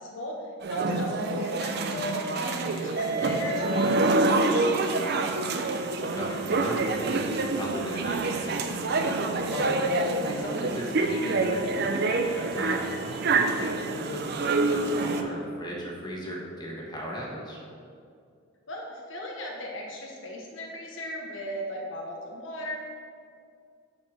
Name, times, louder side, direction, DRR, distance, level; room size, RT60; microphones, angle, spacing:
voice 1, 0.0-5.2 18.7-22.8, left 1 dB, 70° left, -1 dB, 1.0 m, -37 dB
sound 1, 0.6-15.2, right 3 dB, 55° right, 0.5 m, -27 dB
voice 2, 6.1-8.8 9.5-9.8 10.2-17.6, equal, 20° left, -3 dB, 1.3 m, -37 dB
6.1 x 4.4 x 6.4 m, 2.3 s
head